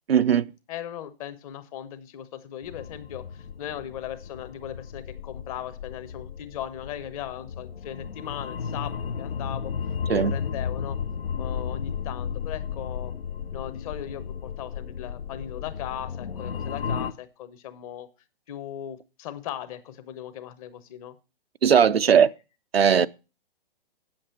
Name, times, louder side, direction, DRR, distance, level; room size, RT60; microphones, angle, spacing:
voice 1, 0.1-0.5 10.1-10.3 21.6-22.3 22.7-23.1, right 7 dB, 90° right, 0.5 m, -18 dB
voice 2, 0.7-9.7 10.1-11.0 11.4-13.1 13.5-18.1 18.5-21.2 22.0-22.3, left 11 dB, 35° left, 1.1 m, -38 dB
sound 1, 2.6-17.1, left 7 dB, 80° left, 0.6 m, -34 dB
8.5 x 7.7 x 4.4 m
figure-of-eight pair, 125°, 29 cm